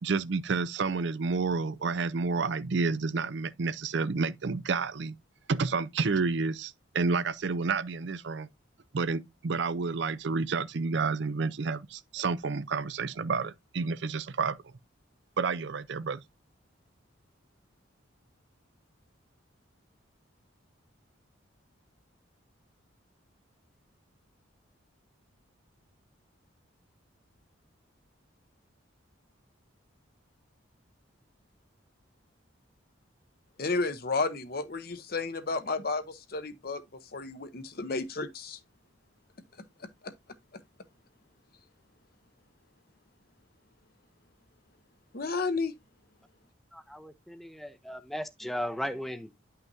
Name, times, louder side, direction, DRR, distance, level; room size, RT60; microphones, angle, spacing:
voice 1, 0.0-5.2 5.5-8.5 8.9-14.6 15.4-16.2, right 4 dB, 60° right, 0.5 m, -30 dB
voice 2, 33.6-36.8 37.1-38.6 40.0-40.1 45.1-45.7, left 3 dB, 50° left, 0.8 m, -32 dB
voice 3, 46.7-49.4, equal, ahead, 0.6 m, -37 dB
10.5 x 5.7 x 2.6 m
head